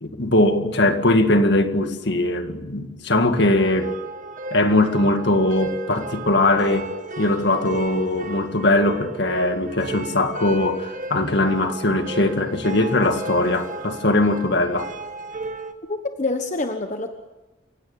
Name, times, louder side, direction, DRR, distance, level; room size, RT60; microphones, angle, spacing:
voice 1, 0.0-3.9 4.5-6.9 7.2-14.9, left 2 dB, 55° left, 7 dB, 1.9 m, -20 dB
sound 1, 3.4-15.7, right 2 dB, 40° right, 1.4 m, -34 dB
voice 2, 15.9-17.1, left 2 dB, 35° left, 6 dB, 1.2 m, -26 dB
28.5 x 17.0 x 7.3 m, 1.1 s
head